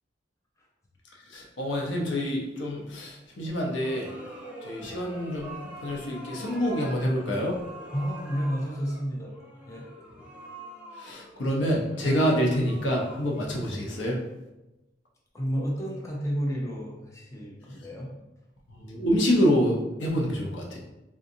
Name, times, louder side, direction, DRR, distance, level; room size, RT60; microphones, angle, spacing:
voice 1, 1.3-4.1 4.6-7.6 11.0-14.2 18.7-20.8, equal, 85° left, -1 dB, 0.7 m, -27 dB
sound 1, 3.4-14.4, right 1 dB, 10° right, 0.9 m, -45 dB
voice 2, 7.9-9.3 9.7-9.9 15.3-18.1, equal, 15° left, -3 dB, 0.6 m, -31 dB
3.7 x 2.6 x 2.7 m, 0.99 s
head